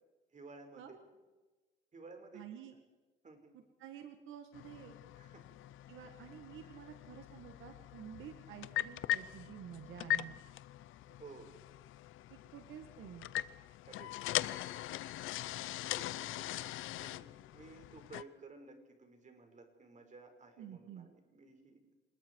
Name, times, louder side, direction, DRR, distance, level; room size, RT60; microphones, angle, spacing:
voice 1, 0.3-1.0 1.9-2.4 3.2-3.5 5.2-5.5 6.6-6.7 11.1-11.6 13.8-14.7 15.3-21.8, right 3 dB, 40° right, 5 dB, 5.3 m, -55 dB
voice 2, 2.3-2.7 3.5-5.0 5.9-10.4 12.3-13.3 20.6-21.1, right 9 dB, 85° right, 6 dB, 1.9 m, -50 dB
sound 1, 4.5-18.2, left 14 dB, 90° left, 0.7 m, -41 dB
26.5 x 21.0 x 4.8 m, 1.2 s
cardioid pair, 90°, 20 cm